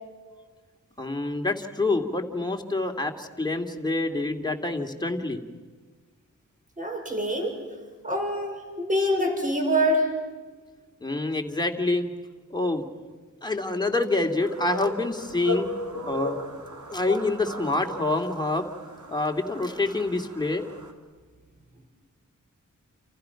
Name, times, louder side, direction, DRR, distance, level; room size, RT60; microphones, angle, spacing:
voice 1, 1.0-5.4 11.0-12.1 12.5-12.8 13.4-15.7 16.1-16.4 16.9-18.7 19.1-20.6, left 2 dB, 15° left, 3 dB, 2.5 m, -27 dB
voice 2, 6.8-7.5 8.0-10.1, equal, 25° right, 2 dB, 5.5 m, -25 dB
sound 1, 14.4-20.9, left 1 dB, 75° right, 3.4 m, -36 dB
29.0 x 29.0 x 5.9 m, 1.4 s
wide cardioid pair, 120°, 30 cm